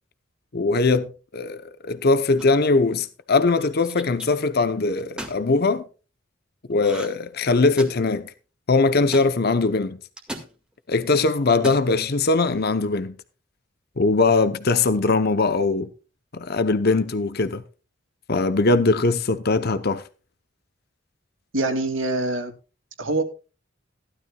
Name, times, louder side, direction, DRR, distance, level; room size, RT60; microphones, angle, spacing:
voice 1, 0.5-5.8 6.7-8.3 8.7-10.0 10.9-13.2 14.0-15.9 16.3-17.6 18.3-20.0, left 3 dB, 50° left, 0.8 m, -21 dB
sound 1, 2.4-2.7 3.5-4.3 5.0-5.4 6.8-7.3 7.5-8.1 9.1-9.3 10.2-10.5 11.5-11.9, right 1 dB, 5° right, 1.9 m, -36 dB
voice 2, 21.5-22.5 23.0-23.2, right 2 dB, 70° right, 2.4 m, -24 dB
15.0 x 12.5 x 2.3 m
head